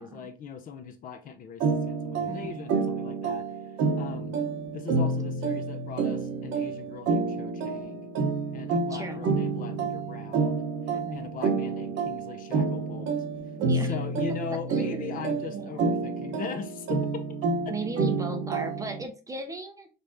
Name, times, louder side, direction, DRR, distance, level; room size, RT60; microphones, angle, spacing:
voice 1, 0.0-4.4 4.7-8.1 8.5-10.7 11.1-13.2 13.7-17.2 17.6-17.7, left 7 dB, 40° left, 0.7 m, -40 dB
sound 1, 1.6-19.1, right 4 dB, 60° right, 1.0 m, -29 dB
voice 2, 2.2-2.6 8.9-9.3 10.9-11.3 13.5-14.0 14.7-15.1 15.5-15.9 17.7-19.9, right 3 dB, 15° right, 0.6 m, -37 dB
5.3 x 3.3 x 2.7 m
cardioid pair, 140°, 21 cm